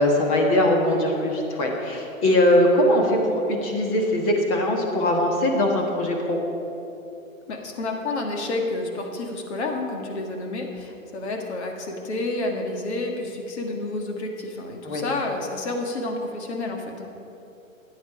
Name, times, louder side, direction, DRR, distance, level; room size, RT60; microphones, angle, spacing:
voice 1, 0.0-6.4 14.8-15.0, left 1 dB, 25° left, 1 dB, 1.5 m, -21 dB
voice 2, 7.5-17.1, left 2 dB, 50° left, 2 dB, 1.9 m, -30 dB
13.0 x 9.6 x 4.9 m, 2.8 s
hypercardioid pair, 160°, 42 cm